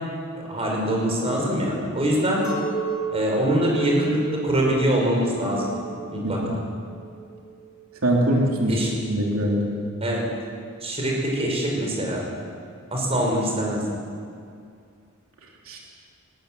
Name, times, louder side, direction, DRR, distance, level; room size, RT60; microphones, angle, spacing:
voice 1, 0.5-2.4 3.1-5.7 6.1-6.6 8.7-8.9 10.0-10.3 10.8-12.2 12.9-13.8, equal, 30° right, -1 dB, 5.7 m, -24 dB
Chink clink, 2.4-7.9, right 7 dB, 15° left, 5.7 m, -32 dB
voice 2, 8.0-8.8 9.1-9.7 15.7-15.8, right 1 dB, 90° right, -1 dB, 3.1 m, -22 dB
20.0 x 18.5 x 7.8 m, 2.3 s
head